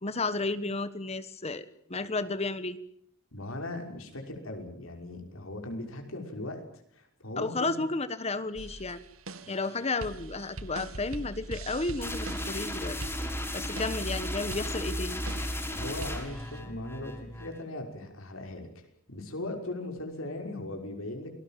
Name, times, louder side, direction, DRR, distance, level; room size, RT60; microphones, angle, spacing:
voice 1, 0.0-2.8 7.4-9.0 9.5-13.0 13.5-15.2, left 3 dB, 30° left, 13 dB, 1.3 m, -32 dB
voice 2, 3.3-6.6 6.9-7.8 15.7-21.3, left 2 dB, 80° left, 3 dB, 5.8 m, -39 dB
sound 1, 8.6-16.6, right 2 dB, 85° right, 1.8 m, -43 dB
sound 2, 12.0-17.6, equal, 10° left, 5.6 m, -35 dB
28.5 x 20.5 x 7.6 m, 0.68 s
head